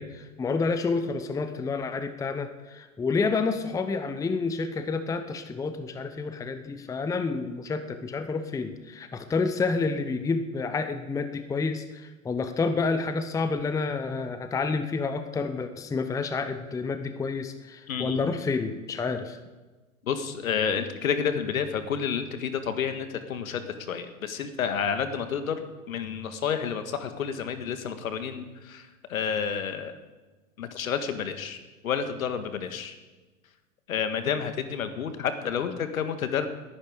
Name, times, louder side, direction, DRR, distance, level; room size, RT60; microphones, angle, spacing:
voice 1, 0.0-19.4, left 4 dB, 10° left, 9 dB, 0.7 m, -29 dB
voice 2, 17.9-18.2 20.0-23.6 23.9-29.9 30.6-32.9 33.9-36.5, left 7 dB, 75° left, 9 dB, 1.7 m, -30 dB
19.5 x 10.5 x 5.1 m, 1.2 s
hypercardioid pair, 110°, 42 cm